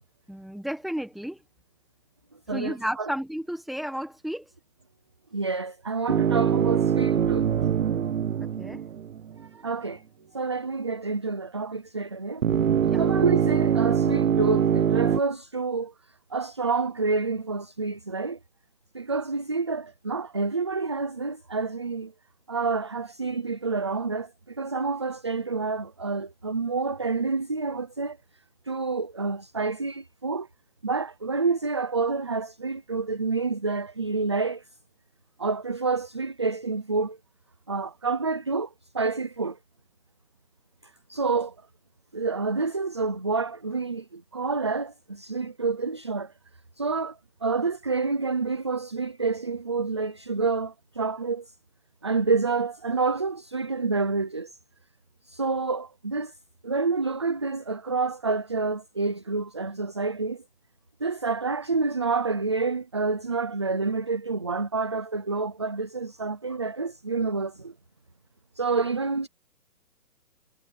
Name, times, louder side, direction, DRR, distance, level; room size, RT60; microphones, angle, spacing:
voice 1, 0.3-1.4 2.5-4.5 8.4-8.8 12.8-13.0, equal, ahead, 1.4 m, -33 dB
voice 2, 2.5-3.1 5.3-7.5 9.4-10.0 10.3-12.4 13.0-15.9 16.3-18.4 18.9-22.1 22.5-28.2 28.7-30.5 30.8-34.6 35.4-37.2 37.7-39.6 41.1-41.5 42.1-46.3 46.8-51.5 52.0-54.5 55.2-56.3 56.6-60.4 61.0-67.7 68.6-69.3, right 4 dB, 20° right, 0.7 m, -28 dB
sound 1, 6.1-9.4 12.4-15.2, right 8 dB, 55° right, 0.9 m, -23 dB
hypercardioid pair, 165°, 48 cm